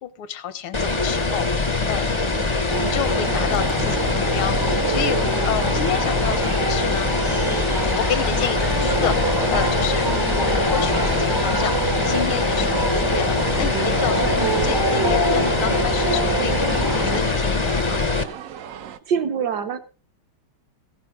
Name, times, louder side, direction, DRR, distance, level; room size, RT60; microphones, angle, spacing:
voice 1, 0.0-2.1 2.7-7.1 8.0-10.1 10.3-18.0, left 10 dB, 80° left, 14 dB, 1.7 m, -30 dB
sound 1, 0.7-18.2, left 3 dB, 40° left, 0.4 m, -23 dB
sound 2, 2.7-17.2, right 1 dB, 25° right, 0.5 m, -26 dB
sound 3, 3.1-19.0, right 9 dB, 75° right, 0.7 m, -37 dB
voice 2, 14.2-14.5 19.1-19.8, right 7 dB, 60° right, 7 dB, 1.3 m, -26 dB
16.0 x 9.9 x 3.6 m, 0.34 s
omnidirectional pair, 2.3 m